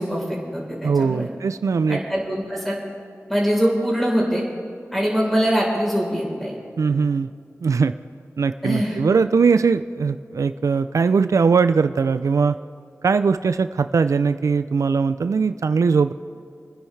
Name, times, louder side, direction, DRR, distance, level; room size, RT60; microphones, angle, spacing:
voice 1, 0.0-1.3 1.9-2.7 3.3-4.4 4.9-6.5 8.6-9.0, equal, 5° left, -3 dB, 3.9 m, -23 dB
voice 2, 0.8-2.0 6.8-7.3 7.6-7.9 8.4-12.6 13.0-16.1, right 5 dB, 85° right, 11 dB, 0.4 m, -20 dB
28.5 x 10.0 x 3.3 m, 2.3 s
wide cardioid pair, 90°, 5 cm